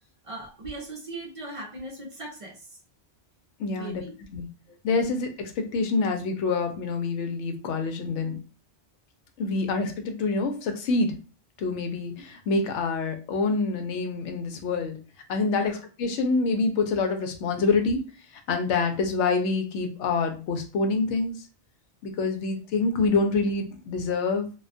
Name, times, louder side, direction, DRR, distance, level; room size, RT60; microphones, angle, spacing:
voice 1, 0.2-2.8 3.8-4.2 4.7-4.8 15.5-15.8, right 2 dB, 50° right, 0 dB, 0.4 m, -39 dB
voice 2, 3.6-4.0 4.3-4.5 4.8-8.4 9.4-11.2 11.6-15.0 15.3-18.0 18.5-21.4 22.0-24.5, left 3 dB, 85° left, 5 dB, 0.9 m, -26 dB
2.3 x 2.2 x 2.5 m, 0.34 s
omnidirectional pair, 1.2 m